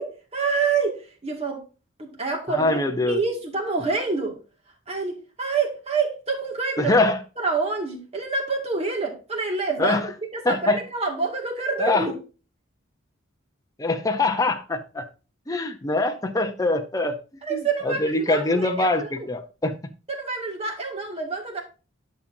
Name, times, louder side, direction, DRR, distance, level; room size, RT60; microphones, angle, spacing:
voice 1, 0.0-1.6 2.0-2.8 3.1-4.4 4.9-7.0 7.4-10.0 10.3-12.1 17.4-19.3 20.1-21.6, right 4 dB, 30° right, 1 dB, 2.1 m, -27 dB
voice 2, 2.5-3.2 6.8-7.2 9.8-10.0 10.4-10.8 11.8-12.1 13.8-15.0 15.5-17.1 17.5-17.6 17.8-19.8, left 2 dB, 15° left, 5 dB, 0.6 m, -23 dB
11.5 x 6.6 x 2.7 m, 0.33 s
head